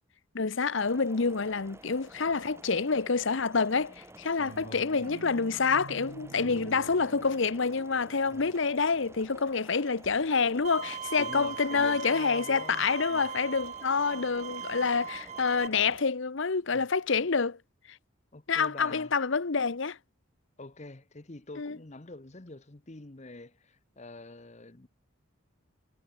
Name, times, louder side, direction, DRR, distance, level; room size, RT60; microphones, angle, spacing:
voice 1, 0.3-17.6 18.5-20.0 21.6-21.8, left 5 dB, 65° left, 0.8 m, -27 dB
sound 1, 0.7-16.0, right 1 dB, 10° right, 3.6 m, -51 dB
sound 2, 4.4-9.5, right 3 dB, 70° right, 0.8 m, -48 dB
voice 2, 4.6-5.1 8.3-8.6 11.2-13.3 16.7-16.8 18.3-19.1 20.6-24.9, left 2 dB, 35° left, 1.0 m, -45 dB
Bowed string instrument, 10.6-15.7, right 8 dB, 35° right, 0.4 m, -40 dB
head